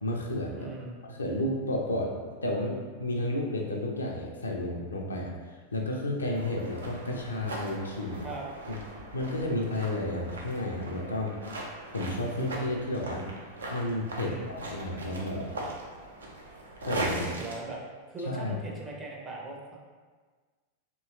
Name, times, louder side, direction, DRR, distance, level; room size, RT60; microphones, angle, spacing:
voice 1, 0.0-0.7 1.0-8.3 8.7-8.8 9.1-11.4 11.9-13.3 13.7-15.5 16.8-17.2 18.2-18.6, left 1 dB, 75° left, 0 dB, 0.4 m, -32 dB
voice 2, 0.5-1.0 8.2-8.5 14.2-14.5 17.1-17.8 18.1-19.8, right 3 dB, 20° right, -2 dB, 0.6 m, -39 dB
sound 1, 6.3-17.5, right 2 dB, 70° right, 0.4 m, -40 dB
2.9 x 2.7 x 2.4 m, 1.4 s
figure-of-eight pair, 90°, 0 cm